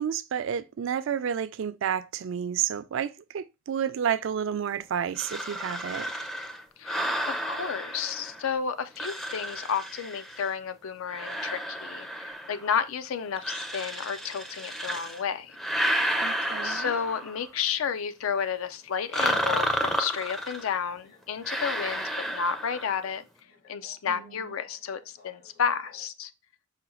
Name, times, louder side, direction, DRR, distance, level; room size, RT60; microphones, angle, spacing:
voice 1, 0.0-6.1 16.2-16.9 24.1-24.2, right 8 dB, 65° right, 0.4 m, -30 dB
sound 1, 5.2-8.5 9.0-10.5 11.1-12.7 13.4-15.2 15.5-17.5 19.1-20.7 21.4-23.0, equal, ahead, 0.4 m, -31 dB
voice 2, 6.8-15.6 16.6-23.2 23.7-26.3, left 7 dB, 80° left, 0.4 m, -32 dB
sound 2, 20.9-26.1, left 5 dB, 65° left, 1.4 m, -57 dB
5.0 x 2.3 x 4.2 m
head